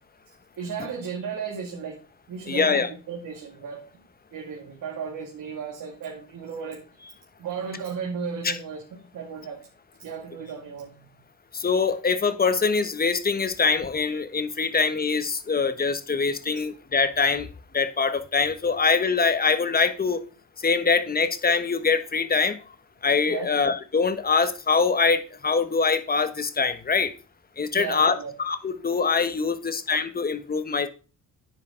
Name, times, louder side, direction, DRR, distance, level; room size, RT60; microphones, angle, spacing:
voice 1, 0.6-2.0 2.3-3.8 4.3-9.6 10.0-11.1 23.3-23.5 27.7-28.3, right 6 dB, 70° right, 2.5 m, -35 dB
voice 2, 2.5-2.9 8.4-8.5 11.5-17.5 17.7-20.2 20.6-22.6 23.0-27.1 27.6-30.9, left 5 dB, 25° left, 1.2 m, -23 dB
9.6 x 9.1 x 3.9 m
cardioid pair, 110°, 33 cm